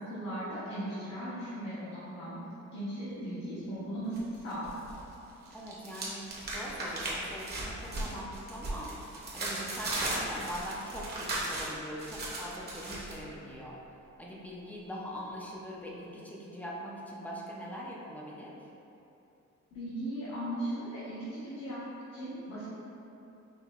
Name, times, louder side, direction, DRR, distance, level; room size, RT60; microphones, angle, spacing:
voice 1, 0.0-2.4 2.7-4.9 19.7-21.8 22.1-22.7, right 1 dB, 60° left, -11 dB, 1.0 m, -37 dB
sound 1, 4.1-5.0 5.3-13.1, right 2 dB, 35° right, 0.8 m, -37 dB
voice 2, 5.5-13.8 14.2-18.7, equal, 5° left, -4 dB, 0.4 m, -42 dB
5.5 x 2.8 x 2.4 m, 2.9 s
cardioid pair, 150°, 29 cm